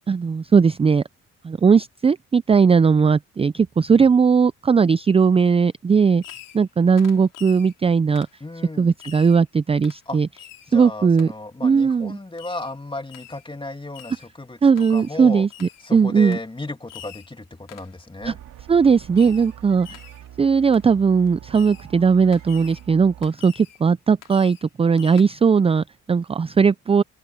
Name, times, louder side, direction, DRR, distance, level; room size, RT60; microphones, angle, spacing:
voice 1, 0.1-1.0 1.4-6.2 6.5-8.3 8.8-10.3 10.7-11.3 11.6-12.2 14.6-16.4 18.2-18.3 18.7-20.0 20.4-27.0, right 5 dB, 20° right, 0.4 m, -18 dB
Fireworks, 6.2-6.7 7.0-7.7 8.2-8.4 9.0-9.4 9.8-10.0 10.4-10.7 11.2-11.3 12.4-12.7 13.1-13.5 13.9-14.3 14.8-15.2 15.5-15.9 16.3-16.5 16.9-17.3 17.7-18.0 19.2-19.6 19.8-20.2 20.7-20.9 21.5-21.9 22.3-22.8 23.2-23.8 24.2-24.7 25.0-25.2, left 12 dB, 85° left, 4.7 m, -45 dB
voice 2, 8.4-8.9 10.1-10.2 10.7-15.5 15.8-18.4, left 2 dB, 15° left, 2.7 m, -34 dB
sound 1, 18.2-23.3, right 11 dB, 85° right, 2.7 m, -43 dB
open air
cardioid pair, 80°, 32 cm